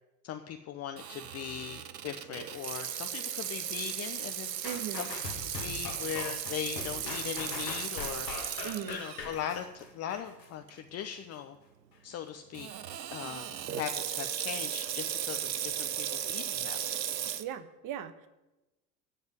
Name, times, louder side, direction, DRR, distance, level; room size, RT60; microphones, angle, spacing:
voice 1, 0.2-4.5 4.9-5.1 5.4-8.3 8.9-11.6 12.0-12.7 13.1-13.5 13.8-16.8, left 9 dB, 30° left, 6 dB, 0.8 m, -39 dB
Water tap faucet / Sink (filling or washing), 1.0-9.4 9.8-9.9 10.7-11.0 12.5-17.4, right 10 dB, 80° right, 0.8 m, -36 dB
sound 1, 4.6-10.5 11.0-11.1, left 4 dB, 80° left, 2.1 m, -41 dB
voice 2, 4.6-5.1 8.6-9.0 17.4-18.3, right 10 dB, 40° right, 12 dB, 1.2 m, -38 dB
13.5 x 5.4 x 9.3 m, 1.0 s
figure-of-eight pair, 75°, 49 cm